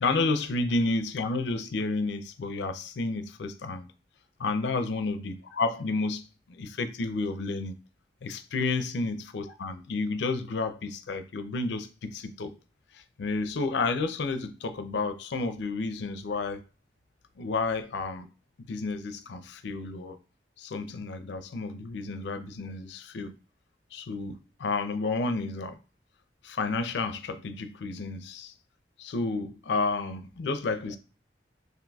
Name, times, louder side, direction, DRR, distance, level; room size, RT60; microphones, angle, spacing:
voice 1, 0.0-3.9 4.4-7.8 8.2-12.5 12.9-16.6 17.4-18.3 18.7-20.2 20.6-23.3 23.9-25.8 26.4-28.5 29.0-31.0, left 3 dB, 80° left, 0.4 m, -31 dB
2.5 x 2.3 x 3.9 m
head